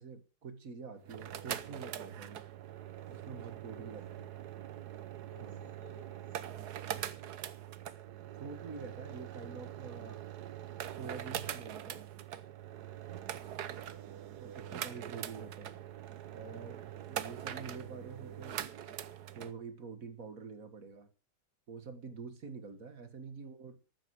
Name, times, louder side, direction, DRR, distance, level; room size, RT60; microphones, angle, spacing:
voice 1, 0.0-2.4 3.1-4.2 5.4-5.6 8.4-10.2 10.9-12.1 14.4-15.7 16.3-18.7 19.3-21.1 21.7-23.8, right 5 dB, 40° right, 1.8 m, -47 dB
sound 1, 1.0-19.5, right 11 dB, 60° right, 1.2 m, -43 dB
voice 2, 3.8-4.2 5.3-6.7 13.4-14.0 22.7-22.8, left 2 dB, 80° left, 6.9 m, -61 dB
14.0 x 12.5 x 4.8 m
omnidirectional pair, 2.3 m